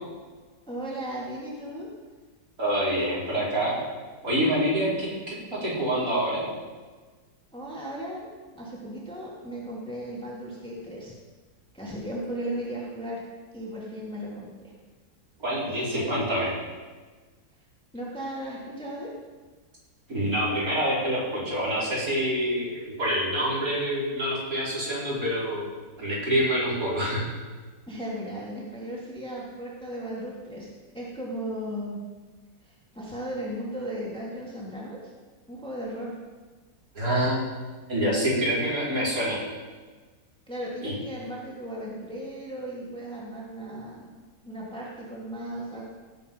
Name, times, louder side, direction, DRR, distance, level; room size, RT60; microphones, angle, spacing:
voice 1, 0.7-1.9 7.5-8.3 8.5-11.1 11.7-13.2 13.5-14.7 15.7-16.2 17.9-19.1 27.9-32.0 32.6-35.1 35.5-36.1 40.5-44.1 44.4-45.8, right 1 dB, 5° left, -5 dB, 3.0 m, -36 dB
voice 2, 2.6-3.8 4.2-6.5 15.4-16.5 20.1-25.7 26.0-27.3 36.9-37.4 37.9-39.4 40.8-41.0, equal, 60° right, -7 dB, 5.7 m, -26 dB
17.5 x 8.3 x 5.6 m, 1.4 s
omnidirectional pair, 1.7 m